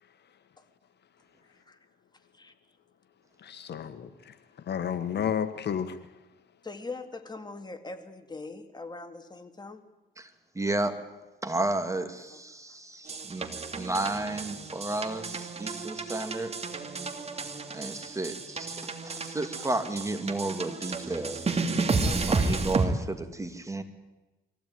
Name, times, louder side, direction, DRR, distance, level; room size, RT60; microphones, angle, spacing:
voice 1, 3.4-4.4 4.6-6.0, left 8 dB, 60° left, 11 dB, 1.4 m, -31 dB
voice 2, 6.6-9.8 12.3-12.4 19.6-19.7 22.0-22.5, left 3 dB, 20° left, 7 dB, 2.5 m, -42 dB
voice 3, 10.2-11.0 11.4-13.5 13.8-16.5 17.7-21.6 22.3-23.8, right 2 dB, 15° right, 7 dB, 2.6 m, -32 dB
sound 1, 13.1-22.9, right 4 dB, 30° right, 2.5 m, -32 dB
23.0 x 16.0 x 9.5 m, 1.1 s
cardioid pair, 90°, 20 cm